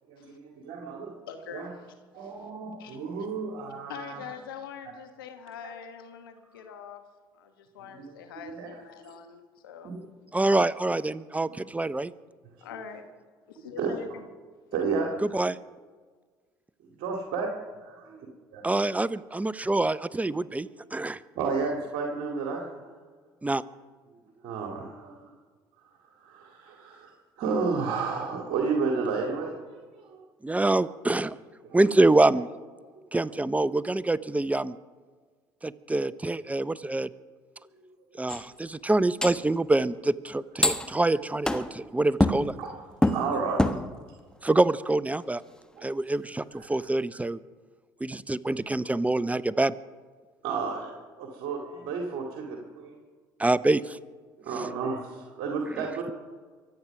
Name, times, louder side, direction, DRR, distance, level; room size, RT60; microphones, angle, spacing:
voice 1, 0.1-1.1 1.5-1.7 2.1-4.3 5.6-5.7 7.8-8.1 8.4-8.8 9.8-10.1 11.5-11.6 12.4-12.8 13.8-13.9 14.7-15.1 17.0-17.5 17.8-18.6 21.4-22.9 24.4-25.3 26.2-27.1 27.4-30.2 31.2-31.3 31.6-31.9 33.2-33.4 37.7-38.0 42.6-42.7 43.0-43.6 45.7-45.9 46.5-46.7 50.4-50.9 51.2-52.9 54.4-56.1, right 5 dB, 65° right, 1 dB, 2.3 m, -32 dB
voice 2, 1.3-1.9 2.1-2.5 2.8-3.0 3.9-7.0 7.3-9.9 12.6-13.1 13.5-14.2, left 7 dB, 85° left, 7 dB, 1.2 m, -43 dB
voice 3, 10.3-12.1 15.3-15.5 18.6-20.7 20.9-21.2 23.4-23.6 30.4-31.3 31.7-32.5 33.1-34.7 35.6-37.1 38.2-42.5 44.4-45.4 45.8-47.4 48.0-49.7 53.4-53.8, right 2 dB, 10° right, 18 dB, 0.6 m, -25 dB
sound 1, 38.3-38.5 39.2-39.5 40.6-41.0 41.4-41.8 42.2-42.7 43.0-44.1 44.8-44.9 45.2-45.3 46.8-46.9, left 1 dB, 5° left, 1.1 m, -26 dB
24.0 x 8.9 x 5.9 m, 1.5 s
hypercardioid pair, 60°, 11 cm